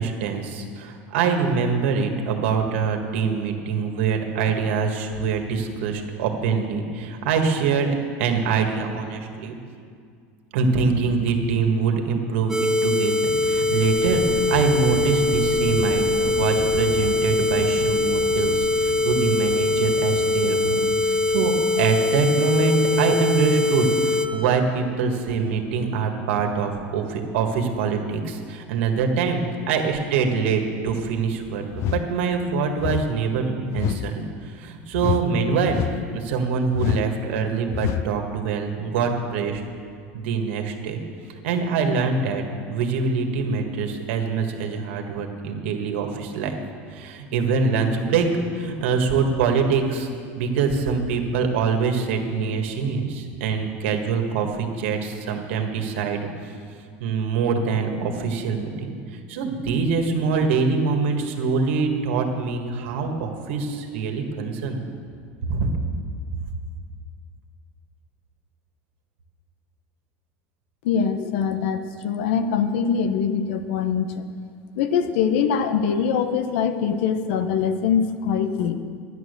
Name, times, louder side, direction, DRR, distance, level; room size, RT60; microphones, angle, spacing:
voice 1, 0.0-9.6 10.5-29.4 29.7-35.8 36.1-39.6 40.1-41.0 41.4-42.4 42.7-46.5 46.9-48.3 48.5-50.1 50.4-56.2 57.0-58.9 59.3-64.8 65.5-65.7, right 5 dB, 85° right, 4 dB, 1.7 m, -24 dB
sound 1, 12.5-24.3, left 2 dB, 10° right, 0.9 m, -22 dB
sound 2, 13.3-24.7, right 6 dB, 30° right, 0.7 m, -37 dB
sound 3, 31.7-32.1 32.8-33.1 33.7-34.1 34.9-35.3 35.7-36.1 36.7-37.1 37.7-38.1, left 13 dB, 50° left, 0.4 m, -26 dB
voice 2, 70.8-74.2 74.8-78.8, left 7 dB, 80° left, 9 dB, 0.9 m, -23 dB
13.0 x 10.5 x 6.7 m, 2.2 s
supercardioid pair, 135°, 6 cm